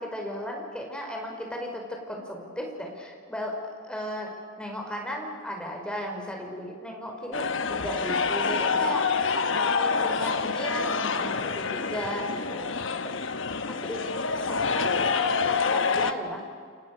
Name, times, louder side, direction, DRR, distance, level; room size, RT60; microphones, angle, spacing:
voice 1, 0.0-3.6 3.9-12.7 13.0-13.1 13.7-14.0 14.5-16.4, equal, 5° left, 1 dB, 5.4 m, -35 dB
sound 1, 7.3-16.1, left 5 dB, 75° left, 1.2 m, -27 dB
29.5 x 28.0 x 6.8 m, 2.1 s
head